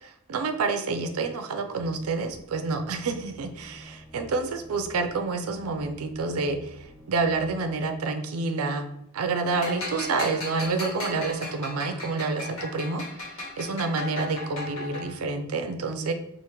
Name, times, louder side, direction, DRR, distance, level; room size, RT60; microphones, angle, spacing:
voice 1, 0.3-6.7 7.1-8.9 9.1-13.0 13.6-16.1, right 4 dB, 85° right, 7 dB, 0.5 m, -28 dB
sound 1, 1.8-7.7, right 1 dB, 5° left, 0.3 m, -49 dB
sound 2, 9.5-15.3, left 2 dB, 70° left, 1.5 m, -36 dB
4.9 x 2.5 x 3.0 m, 0.79 s
head